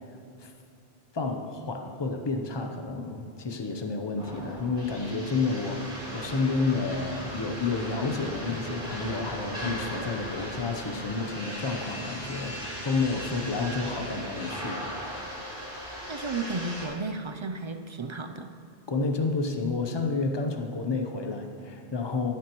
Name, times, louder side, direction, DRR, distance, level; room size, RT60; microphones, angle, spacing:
voice 1, 1.1-14.8 18.9-22.3, left 3 dB, 30° left, 4 dB, 0.8 m, -30 dB
sound 1, 4.2-16.9, equal, 5° right, 3.0 m, -38 dB
voice 2, 16.1-18.5, right 3 dB, 45° right, 6 dB, 0.4 m, -33 dB
12.5 x 11.5 x 3.0 m, 2.6 s
omnidirectional pair, 1.1 m